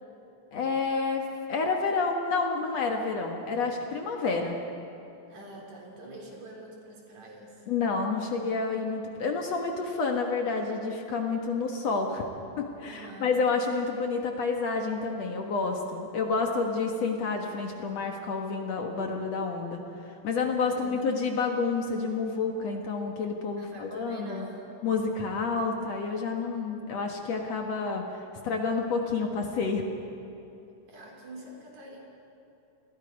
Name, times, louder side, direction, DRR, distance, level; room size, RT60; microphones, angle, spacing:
voice 1, 0.5-4.6 7.7-12.3 12.6-24.5 24.8-29.8, left 4 dB, 55° left, 2 dB, 2.4 m, -29 dB
voice 2, 5.3-7.7 12.8-13.3 20.7-21.2 23.6-24.7 30.9-32.0, right 1 dB, 55° right, -1 dB, 4.7 m, -46 dB
29.5 x 21.5 x 5.3 m, 2.9 s
omnidirectional pair, 3.9 m